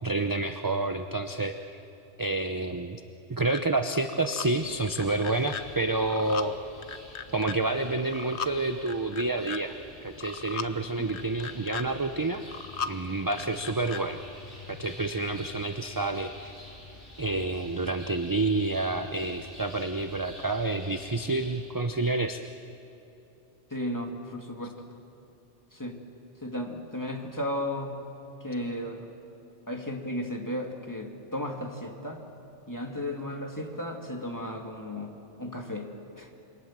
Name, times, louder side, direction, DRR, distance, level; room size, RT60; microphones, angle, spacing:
voice 1, 0.0-1.6 2.2-3.0 3.3-6.5 7.3-9.7 10.0-12.4 12.8-14.2 14.7-16.5 17.2-22.4, right 2 dB, 20° right, 7 dB, 0.6 m, -29 dB
sound 1, 3.5-3.6 4.0-4.5 4.9-5.6 6.0-6.5 6.8-7.6 8.0-8.5 8.9-9.6 10.1-10.7 11.1-11.8 12.3-12.9 13.3-14.0, left 7 dB, 70° left, 1.1 m, -37 dB
sound 2, 4.6-21.6, left 1 dB, 50° left, 6.4 m, -48 dB
voice 2, 23.7-24.7 25.7-26.0 26.4-28.0 28.4-29.1 29.7-32.2 32.7-35.1 35.4-35.9 36.2-36.3, left 1 dB, 15° left, 2 dB, 2.3 m, -34 dB
27.5 x 24.0 x 7.5 m, 2.9 s
omnidirectional pair, 1.2 m